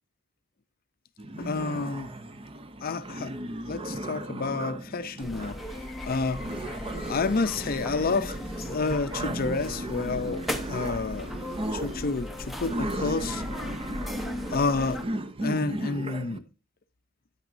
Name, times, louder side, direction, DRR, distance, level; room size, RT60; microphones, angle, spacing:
sound 1, 1.2-16.4, right 1 dB, 25° right, 0.6 m, -36 dB
voice 1, 1.4-2.1 2.8-3.3 3.7-11.3 11.7-13.4 14.5-15.0 15.4-16.4, left 4 dB, 45° left, 0.5 m, -30 dB
sound 2, 5.2-15.0, left 1 dB, ahead, 0.8 m, -37 dB
9.6 x 8.9 x 2.6 m
head